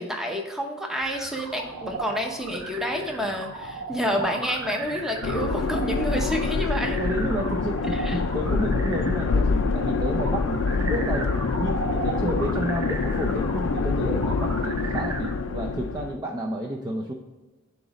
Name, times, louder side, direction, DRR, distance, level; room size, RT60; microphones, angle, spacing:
voice 1, 0.0-7.0 7.9-8.3, equal, ahead, 2 dB, 0.8 m, -29 dB
sound 1, 1.0-15.3, right 3 dB, 75° right, 0.9 m, -36 dB
sound 2, 5.2-16.2, left 4 dB, 60° left, 0.4 m, -26 dB
voice 2, 7.0-17.1, right 1 dB, 20° right, 0 dB, 0.5 m, -31 dB
7.7 x 3.0 x 4.9 m, 1.2 s
head